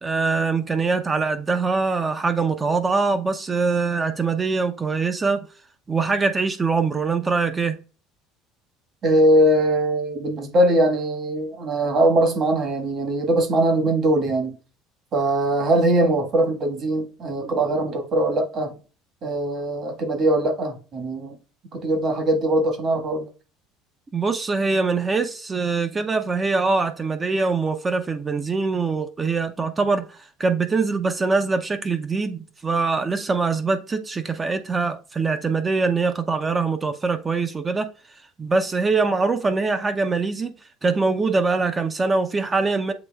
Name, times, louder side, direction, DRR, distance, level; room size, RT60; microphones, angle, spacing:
voice 1, 0.0-5.4 5.9-7.7 24.1-37.9 38.4-40.5 40.8-42.9, right 4 dB, 20° right, 0.5 m, -23 dB
voice 2, 9.0-14.6 15.1-18.7 19.2-21.4 21.7-23.3, right 1 dB, 40° right, 1.3 m, -21 dB
7.7 x 3.0 x 2.2 m
cardioid pair, 135°, 0 cm